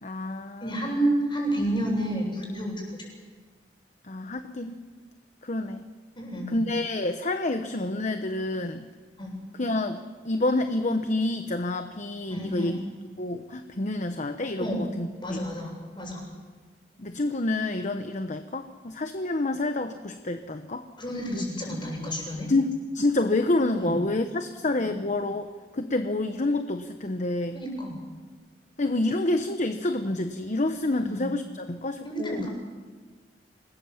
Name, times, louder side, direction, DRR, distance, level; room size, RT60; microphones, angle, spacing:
voice 1, 0.0-0.9 4.0-4.8 5.4-5.9 6.5-8.9 9.6-12.8 13.2-15.4 17.0-20.9 21.3-21.5 22.5-27.6 28.8-32.5, left 2 dB, 45° left, 8 dB, 1.0 m, -28 dB
voice 2, 0.6-3.0 6.2-6.6 9.2-9.4 12.3-12.7 14.6-14.8 15.2-16.2 21.0-22.5 23.8-23.9 24.8-24.9 27.5-28.0 31.0-31.3 32.0-32.5, right 1 dB, 30° left, 0 dB, 7.6 m, -30 dB
26.5 x 20.0 x 7.3 m, 1.4 s
head